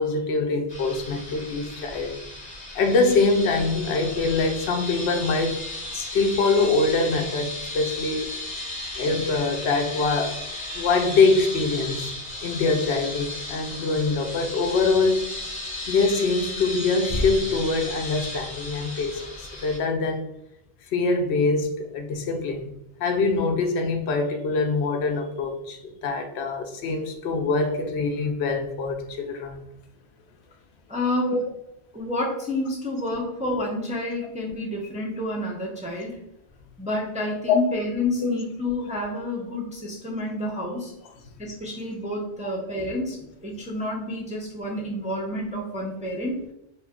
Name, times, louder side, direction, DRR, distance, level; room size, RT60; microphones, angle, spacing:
voice 1, 0.0-2.2 2.7-5.6 5.9-8.6 9.0-10.4 10.7-12.1 12.4-15.3 15.9-20.3 20.9-22.7 23.0-29.6 31.3-31.4 37.5-37.6, left 3 dB, 85° left, 5 dB, 0.8 m, -24 dB
sound 1, 0.7-19.8, left 2 dB, 45° left, 0.8 m, -34 dB
voice 2, 30.9-31.4 31.9-36.2 36.8-40.9 41.4-46.4, left 1 dB, 10° right, -2 dB, 0.3 m, -29 dB
2.7 x 2.4 x 3.5 m, 0.81 s
omnidirectional pair, 1.1 m